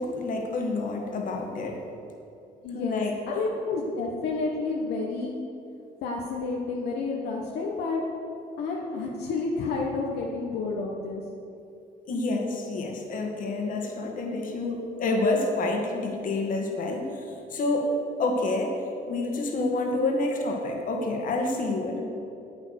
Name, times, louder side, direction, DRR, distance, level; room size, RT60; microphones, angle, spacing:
voice 1, 0.0-1.8 2.7-3.2 12.1-17.2 17.5-17.9 18.2-18.7 19.1-22.0, left 2 dB, 55° left, 1 dB, 2.0 m, -28 dB
voice 2, 2.6-5.3 6.0-8.0 8.6-11.2, left 3 dB, 75° left, -2 dB, 1.4 m, -30 dB
11.0 x 8.7 x 6.6 m, 2.7 s
cardioid pair, 110°, 17 cm